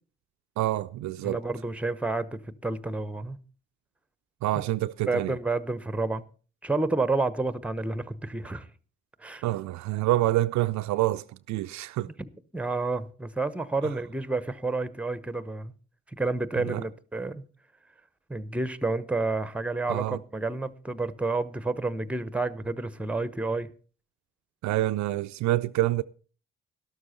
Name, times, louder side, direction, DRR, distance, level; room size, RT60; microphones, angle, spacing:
voice 1, 0.6-1.4 4.4-5.4 9.4-12.1 13.8-13.9 16.6-16.8 19.9-20.2 24.6-26.0, right 16 dB, 60° right, 0.5 m, -27 dB
voice 2, 1.2-3.4 5.1-6.2 6.6-8.7 9.2-9.4 12.2-12.3 12.5-15.7 16.1-17.4 18.3-23.7, right 3 dB, 5° right, 1.0 m, -30 dB
12.5 x 12.5 x 4.2 m
hypercardioid pair, 40°, 32 cm